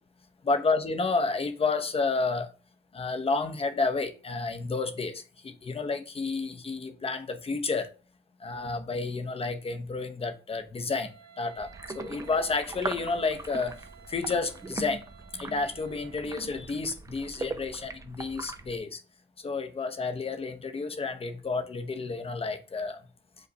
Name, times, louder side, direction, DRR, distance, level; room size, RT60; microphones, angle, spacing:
voice 1, 0.4-2.5 2.9-7.9 8.4-13.8 14.1-15.0 15.3-19.0 19.4-23.0, left 4 dB, 30° left, 0.7 m, -30 dB
Wind instrument woodwind instrument, 10.9-16.3, right 8 dB, 55° right, 1.0 m, -54 dB
sound 1, 11.6-18.8, right 3 dB, 15° right, 0.4 m, -40 dB
5.2 x 2.2 x 3.9 m
cardioid pair, 95°, 19 cm